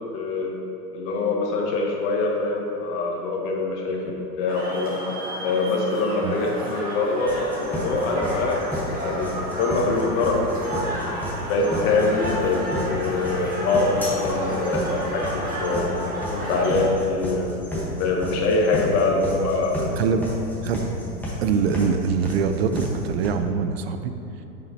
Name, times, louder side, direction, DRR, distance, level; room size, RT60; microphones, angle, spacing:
voice 1, 0.1-0.5 0.9-5.0 5.4-9.3 9.6-10.9 11.4-12.6 12.9-16.0 16.3-17.5 17.9-19.8, left 3 dB, 35° left, 0 dB, 1.0 m, -24 dB
sound 1, 4.5-16.9, right 1 dB, 20° right, 1.3 m, -32 dB
sound 2, 7.3-23.3, left 1 dB, 5° left, 1.1 m, -31 dB
voice 2, 20.0-20.3 20.6-20.8 21.4-24.1, right 6 dB, 45° right, 8 dB, 0.4 m, -23 dB
7.4 x 5.6 x 2.7 m, 3.0 s
hypercardioid pair, 110°, 48 cm